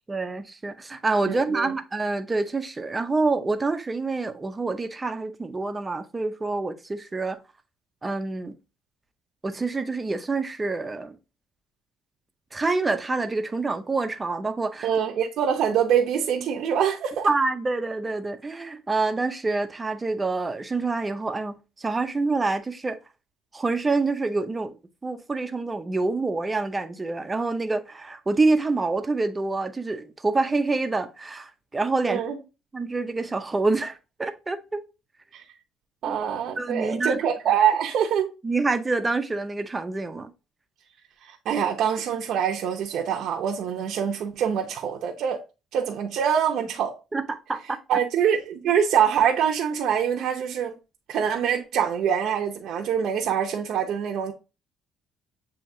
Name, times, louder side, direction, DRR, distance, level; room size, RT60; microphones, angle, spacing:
voice 1, 0.1-7.4 8.0-8.6 9.4-11.2 12.5-14.9 17.2-23.0 23.5-24.8 25.0-32.2 32.7-34.8 36.1-36.2 36.6-37.2 38.4-40.3 47.1-48.0, right 3 dB, 20° right, 0.5 m, -27 dB
voice 2, 1.3-1.7 14.8-17.3 32.1-32.4 35.3-35.4 36.0-38.3 41.3-45.4 45.7-46.9 47.9-50.7 51.1-54.3, right 8 dB, 65° right, 0.6 m, -24 dB
7.2 x 2.8 x 2.6 m
cardioid pair, 130°, 0 cm